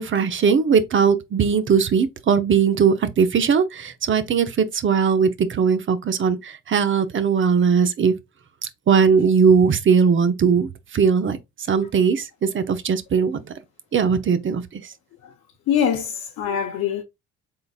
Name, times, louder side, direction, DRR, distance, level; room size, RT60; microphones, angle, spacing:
voice 1, 0.0-8.2 8.9-11.4 11.7-13.4 13.9-14.9, right 6 dB, 40° right, 0.7 m, -19 dB
voice 2, 15.7-17.0, left 8 dB, 75° left, 0.7 m, -23 dB
4.0 x 3.8 x 2.4 m
cardioid pair, 90°, 30 cm